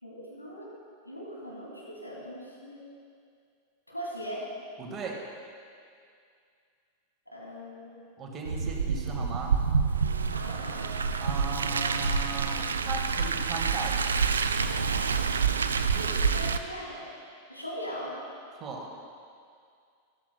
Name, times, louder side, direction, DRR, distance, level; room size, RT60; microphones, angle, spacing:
voice 1, 0.0-0.7 1.0-2.8 3.9-4.4 7.3-8.1 10.3-10.9 15.9-17.1 17.5-18.1, equal, 85° left, -5 dB, 2.5 m, -40 dB
voice 2, 4.8-5.2 8.2-9.5 11.2-14.1 18.5-18.9, right 3 dB, 25° right, 1 dB, 1.6 m, -37 dB
Car, 8.4-16.6, right 5 dB, 70° right, 0.4 m, -27 dB
13.5 x 13.0 x 2.2 m, 2.3 s
figure-of-eight pair, 90°, 0 cm